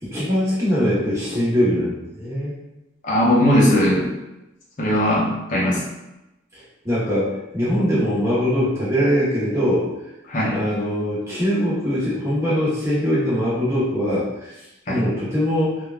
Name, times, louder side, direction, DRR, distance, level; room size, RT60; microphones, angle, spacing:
voice 1, 0.0-2.5 6.8-9.9 10.5-14.5 14.9-15.8, equal, 15° right, -8 dB, 1.0 m, -22 dB
voice 2, 3.0-4.1 4.8-5.8 10.3-10.6 14.9-15.0, equal, 45° left, -5 dB, 0.7 m, -18 dB
3.2 x 2.3 x 2.3 m, 0.95 s
head